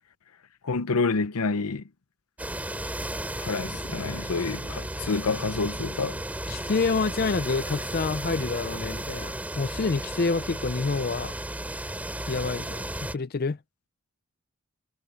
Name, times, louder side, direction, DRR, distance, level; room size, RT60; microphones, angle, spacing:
voice 1, 0.6-1.8 3.4-6.2, left 4 dB, 80° left, 0.7 m, -28 dB
sound 1, 2.4-13.1, right 1 dB, 5° right, 3.4 m, -34 dB
voice 2, 6.5-11.4 12.3-13.6, left 4 dB, 40° left, 0.5 m, -28 dB
head